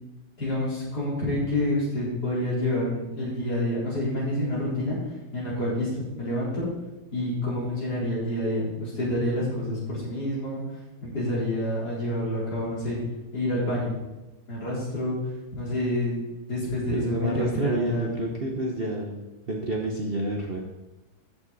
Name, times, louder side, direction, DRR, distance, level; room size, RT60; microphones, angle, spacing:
voice 1, 0.4-5.0 5.3-6.7 7.1-10.6 11.0-13.0 13.3-14.0 14.5-15.2 15.5-16.2 16.5-18.1, left 1 dB, 60° left, -7 dB, 4.6 m, -28 dB
voice 2, 16.9-20.6, right 1 dB, 40° right, 0 dB, 1.1 m, -29 dB
13.5 x 6.1 x 4.2 m, 1.1 s
omnidirectional pair, 2.0 m